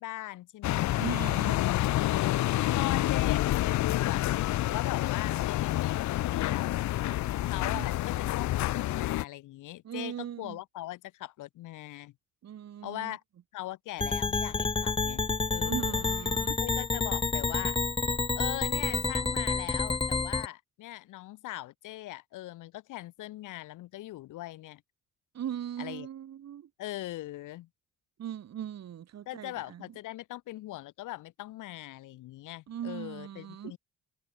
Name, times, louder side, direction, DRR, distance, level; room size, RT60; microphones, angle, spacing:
voice 1, 0.0-0.9 2.0-6.9 7.4-12.1 12.8-13.2 13.5-16.1 16.6-17.8 18.3-24.8 25.8-26.1 26.8-27.7 29.3-33.8, left 16 dB, 90° left, 2.7 m, -41 dB
sound 1, 0.6-9.2, left 15 dB, 70° left, 0.6 m, -28 dB
voice 2, 0.9-1.6 7.6-7.9 9.8-10.6 12.4-13.2 15.6-16.6 25.3-26.7 28.2-29.8 32.7-33.7, right 10 dB, 60° right, 2.1 m, -39 dB
sound 2, 14.0-20.5, left 3 dB, 20° left, 1.0 m, -29 dB
cardioid pair, 90°, 30 cm